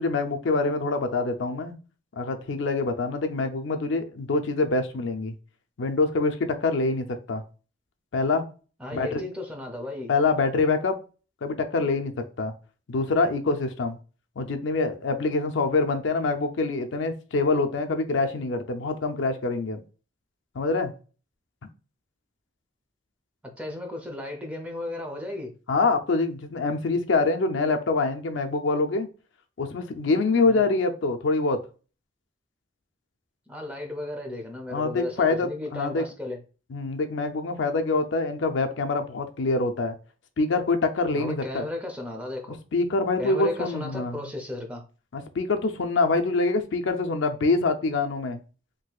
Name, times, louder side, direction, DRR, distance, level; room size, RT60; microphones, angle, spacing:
voice 1, 0.0-1.8 2.2-5.3 5.8-7.4 8.1-8.5 8.9-9.2 10.1-11.0 11.4-12.1 12.4-12.5 12.9-14.0 14.4-19.8 20.5-20.9 25.7-29.1 29.6-31.6 34.7-36.1 36.7-40.0 40.4-41.7 42.7-44.2 45.1-48.4, left 3 dB, 70° left, 6 dB, 0.5 m, -25 dB
voice 2, 8.8-10.1 23.6-25.5 30.5-30.7 33.5-36.4 41.1-42.6 43.2-44.8, left 2 dB, 5° right, 2 dB, 0.6 m, -34 dB
3.9 x 2.7 x 2.3 m, 0.35 s
head